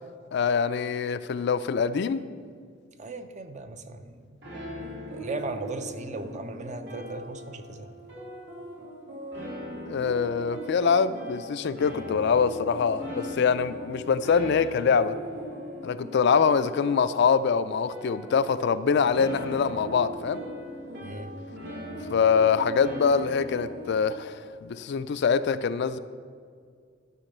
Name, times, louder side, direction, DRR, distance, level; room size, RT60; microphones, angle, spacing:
voice 1, 0.3-2.3 9.9-15.2 15.8-20.4 22.1-26.0, left 6 dB, 60° left, 13 dB, 0.4 m, -24 dB
voice 2, 3.0-4.4 5.1-7.9 21.0-21.3, right 3 dB, 40° right, 9 dB, 0.6 m, -37 dB
sound 1, 4.4-24.0, equal, 70° right, 2.7 m, -39 dB
12.0 x 5.0 x 6.6 m, 2.1 s
head